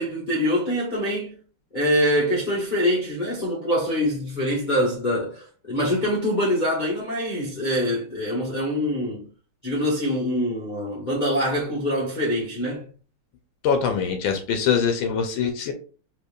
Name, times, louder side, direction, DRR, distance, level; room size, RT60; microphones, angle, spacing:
voice 1, 0.0-1.4 1.7-9.3 9.6-12.9, equal, 45° left, 0.6 m, -24 dB
voice 2, 13.6-15.7, left 6 dB, 80° left, 1.4 m, -23 dB
4.4 x 2.8 x 2.3 m
omnidirectional pair, 2.2 m